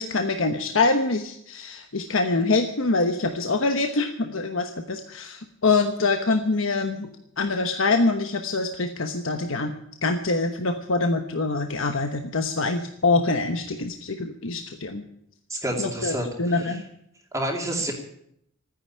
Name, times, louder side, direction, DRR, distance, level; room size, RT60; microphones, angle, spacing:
voice 1, 0.0-7.1 7.4-9.7 10.0-15.0 15.8-16.1 16.4-16.8, left 3 dB, 75° left, 6 dB, 1.1 m, -24 dB
voice 2, 15.5-16.8 17.3-17.9, right 1 dB, 15° right, -1 dB, 2.6 m, -29 dB
13.5 x 9.9 x 9.7 m, 0.73 s
head